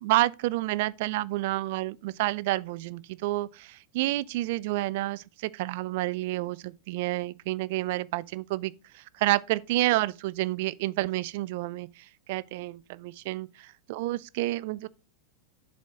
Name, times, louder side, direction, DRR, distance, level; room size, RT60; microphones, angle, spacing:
voice 1, 0.0-14.9, right 18 dB, 50° right, 0.3 m, -29 dB
7.4 x 4.2 x 5.0 m
figure-of-eight pair, 90°, 0 cm